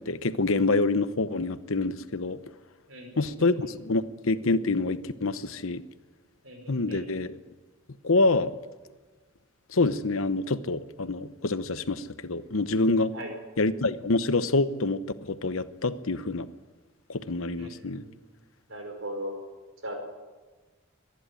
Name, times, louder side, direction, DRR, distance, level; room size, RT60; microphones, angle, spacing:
voice 1, 0.0-2.4 3.2-5.8 6.7-7.4 8.0-8.5 9.7-13.1 13.6-16.5 17.1-18.0, left 3 dB, 75° left, 13 dB, 0.9 m, -26 dB
voice 2, 2.9-3.5 6.4-7.0 13.1-13.3 17.6-18.2 18.7-19.3 19.8-19.9, right 1 dB, 65° right, 3 dB, 5.4 m, -39 dB
24.5 x 11.0 x 9.9 m, 1.3 s
head